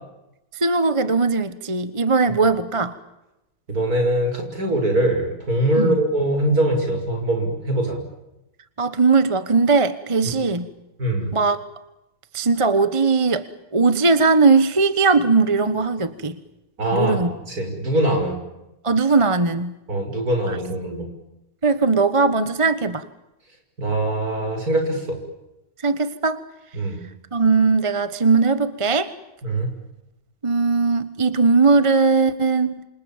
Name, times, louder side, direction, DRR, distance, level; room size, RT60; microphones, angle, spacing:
voice 1, 0.6-2.9 5.8-6.0 8.8-10.7 11.3-11.6 12.3-13.5 13.7-16.4 16.9-17.3 18.8-19.7 20.5-20.6 21.6-23.0 25.8-26.4 27.3-29.1 30.4-32.7, right 4 dB, 20° right, 13 dB, 1.1 m, -19 dB
voice 2, 3.7-8.0 10.2-10.3 11.0-11.3 16.8-18.4 19.9-21.1 23.8-25.2 26.7-27.0 29.4-29.7, right 1 dB, 55° right, 4 dB, 6.7 m, -22 dB
28.5 x 27.0 x 7.3 m, 0.93 s
omnidirectional pair, 1.9 m